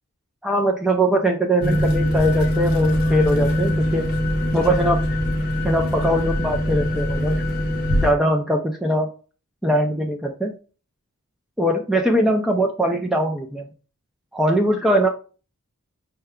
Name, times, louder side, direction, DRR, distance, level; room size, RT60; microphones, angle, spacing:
voice 1, 0.4-4.1 4.5-5.0 5.6-7.4 8.0-9.1 9.6-10.5 11.6-13.7 14.3-15.1, right 1 dB, ahead, 2 dB, 0.3 m, -21 dB
sound 1, 1.6-8.1, left 1 dB, 45° left, 0.8 m, -22 dB
5.5 x 2.2 x 3.5 m, 0.37 s
head